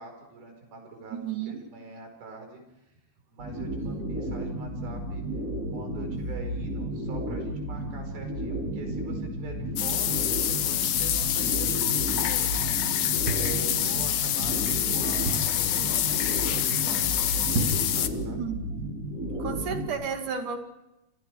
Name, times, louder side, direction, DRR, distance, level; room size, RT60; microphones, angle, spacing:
voice 1, 0.0-2.9 3.3-5.3 5.7-12.7 13.3-18.4, right 3 dB, 80° right, 4 dB, 6.9 m, -44 dB
voice 2, 1.1-1.6 18.4-18.6 19.4-20.6, right 6 dB, 60° right, 4 dB, 3.4 m, -32 dB
sound 1, 3.4-19.9, right 1 dB, 20° right, 5.8 m, -33 dB
sound 2, 9.8-18.1, left 11 dB, 65° left, 2.1 m, -26 dB
sound 3, 13.2-14.2 14.7-14.8 15.0-15.7 16.2-16.5 16.7-16.8 17.4-18.0 18.4-18.5, right 2 dB, 45° right, 3.6 m, -31 dB
28.5 x 26.0 x 4.8 m, 0.91 s
omnidirectional pair, 4.3 m